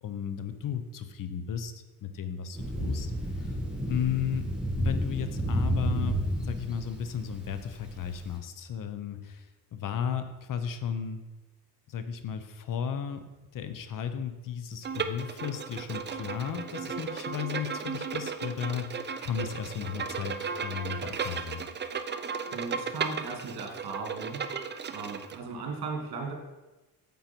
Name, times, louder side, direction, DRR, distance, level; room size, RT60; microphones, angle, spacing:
voice 1, 0.0-1.7 2.0-3.6 3.9-11.2 11.9-13.2 13.5-21.6, left 8 dB, 55° left, 9 dB, 0.9 m, -34 dB
Thunder, 2.5-8.2, right 1 dB, ahead, 1.7 m, -31 dB
Bowed string instrument, 14.8-25.4, right 5 dB, 30° right, 0.5 m, -35 dB
voice 2, 22.5-24.4 24.9-26.3, right 4 dB, 75° right, 1 dB, 2.6 m, -37 dB
9.2 x 7.4 x 4.5 m, 1.1 s
cardioid pair, 135°, 38 cm